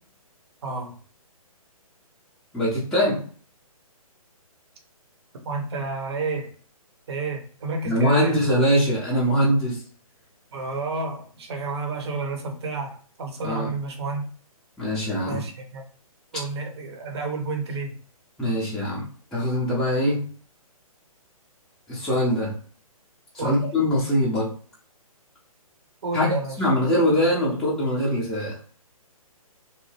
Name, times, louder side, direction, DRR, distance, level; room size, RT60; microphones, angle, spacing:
voice 1, 0.6-0.9 5.5-6.5 7.1-8.4 10.5-14.2 15.3-15.8 16.3-17.9 23.4-23.7 26.0-26.6, right 3 dB, 45° right, 2 dB, 0.8 m, -30 dB
voice 2, 2.5-3.2 7.9-9.8 13.4-13.7 14.8-15.5 18.4-19.0 19.3-20.2 21.9-22.6 23.3-24.5 26.1-26.3 26.6-28.6, equal, 5° left, -7 dB, 0.6 m, -22 dB
2.8 x 2.1 x 3.2 m, 0.43 s
figure-of-eight pair, 135°, 19 cm